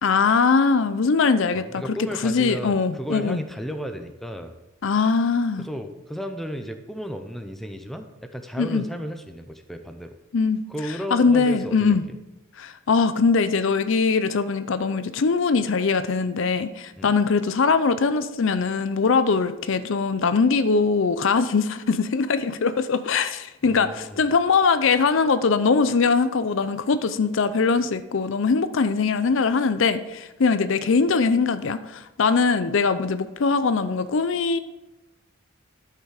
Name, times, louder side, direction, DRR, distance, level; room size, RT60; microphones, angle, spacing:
voice 1, 0.0-1.8 2.2-3.4 4.8-5.7 8.6-8.8 10.3-10.6 11.1-12.0 12.6-34.6, left 4 dB, 60° left, 12 dB, 0.5 m, -21 dB
voice 2, 1.5-4.5 5.6-10.1 10.7-12.2 17.0-17.1 23.6-24.3, equal, ahead, 6 dB, 0.6 m, -34 dB
12.5 x 5.6 x 4.9 m, 0.99 s
head